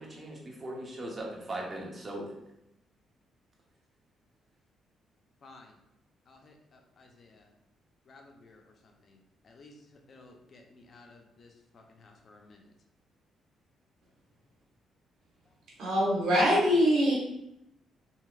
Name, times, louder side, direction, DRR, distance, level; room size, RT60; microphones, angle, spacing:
voice 1, 0.0-2.3, right 1 dB, 35° right, -2 dB, 0.8 m, -39 dB
voice 2, 5.4-5.8 6.3-7.5 8.1-9.2 9.4-12.7, left 3 dB, 50° left, 3 dB, 0.5 m, -56 dB
voice 3, 15.8-17.1, equal, 75° right, -3 dB, 1.1 m, -23 dB
2.9 x 2.8 x 2.4 m, 0.83 s
cardioid pair, 90°, 0 cm